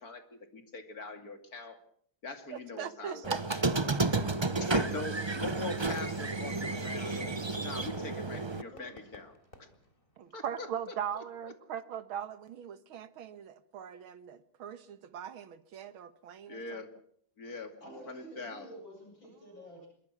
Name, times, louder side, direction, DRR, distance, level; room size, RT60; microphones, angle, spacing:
voice 1, 0.0-1.8 2.2-3.6 4.6-7.3 7.6-9.3 9.6-9.7 10.3-10.7 11.1-11.5 16.5-16.9 17.4-18.7, left 3 dB, 45° left, 7 dB, 2.9 m, -43 dB
voice 2, 2.5-3.4 10.2-16.8, right 9 dB, 75° right, 13 dB, 2.1 m, -40 dB
Squeak, 3.2-8.6, right 3 dB, 45° right, 0.3 m, -31 dB
Fireworks, 7.0-10.8, left 2 dB, 25° left, 3.9 m, -56 dB
voice 3, 17.8-19.9, right 1 dB, 65° left, 1 dB, 8.4 m, -50 dB
25.5 x 23.0 x 6.1 m, 0.63 s
omnidirectional pair, 2.3 m